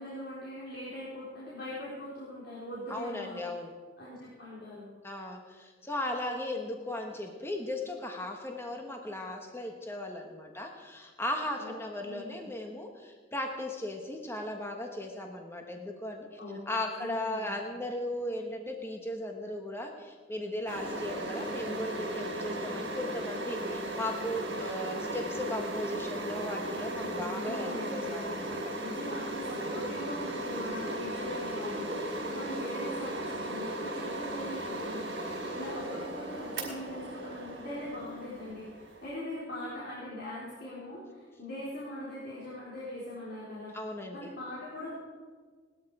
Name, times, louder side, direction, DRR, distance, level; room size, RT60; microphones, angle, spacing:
voice 1, 0.0-3.4 4.0-4.9 11.6-11.7 12.0-12.5 16.4-16.6 17.0-17.6 27.3-28.5 28.8-43.7 44.1-45.0, left 1 dB, 60° left, -8 dB, 4.1 m, -41 dB
voice 2, 2.9-3.7 5.0-16.4 16.7-28.6 43.7-44.3, left 1 dB, 15° left, 3 dB, 1.3 m, -37 dB
sound 1, 20.7-39.1, right 1 dB, 65° right, 4.5 m, -36 dB
19.0 x 12.5 x 4.9 m, 1.5 s
head